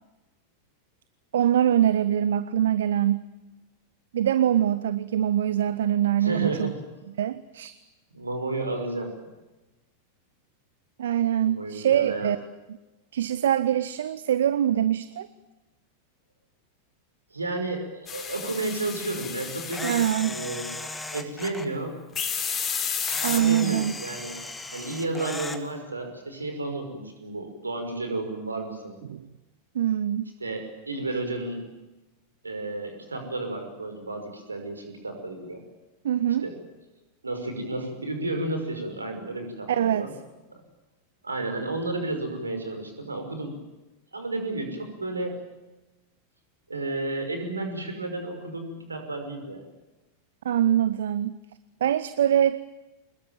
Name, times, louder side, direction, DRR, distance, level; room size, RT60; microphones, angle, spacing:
voice 1, 1.3-3.2 4.1-6.7 7.2-7.7 11.0-12.4 13.1-15.3 19.8-20.4 23.2-24.0 29.1-29.2 29.7-30.3 36.0-36.5 39.7-40.1 50.4-51.3 51.8-52.6, right 10 dB, 60° right, 16 dB, 0.8 m, -23 dB
voice 2, 6.2-6.8 8.1-9.1 11.4-12.3 17.3-19.9 20.2-20.7 21.1-22.0 23.2-24.4 24.7-29.0 30.4-31.6 32.4-35.6 36.4-36.5 37.2-40.1 40.5-40.6 41.2-43.6 44.1-45.4 46.7-49.7, right 2 dB, 80° right, 5 dB, 5.7 m, -32 dB
sound 1, 18.1-20.2 22.2-23.4, left 7 dB, 25° left, 4.2 m, -31 dB
Camera, 19.7-21.7 23.1-25.6, left 2 dB, 10° left, 2.2 m, -36 dB
26.0 x 21.5 x 9.2 m, 1.1 s
figure-of-eight pair, 90°, 0 cm